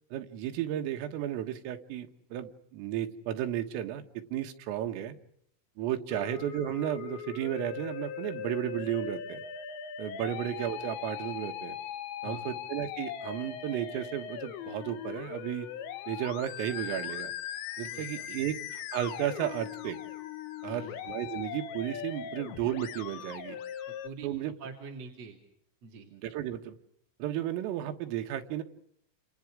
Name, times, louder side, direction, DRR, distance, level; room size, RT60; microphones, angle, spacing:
voice 1, 0.1-5.2 5.8-9.4 10.0-11.8 12.2-15.7 16.1-17.3 17.8-20.0 20.6-23.6 24.2-24.5 26.1-26.8 27.2-28.6, right 11 dB, 85° right, 6 dB, 4.1 m, -34 dB
Musical instrument, 6.1-24.1, left 10 dB, 70° left, 3.4 m, -40 dB
voice 2, 12.2-12.6 17.9-18.3 20.6-21.0 23.9-24.3 24.6-25.4 25.8-26.1, right 4 dB, 40° right, 1 dB, 3.0 m, -45 dB
29.5 x 28.0 x 4.9 m, 0.70 s
omnidirectional pair, 5.8 m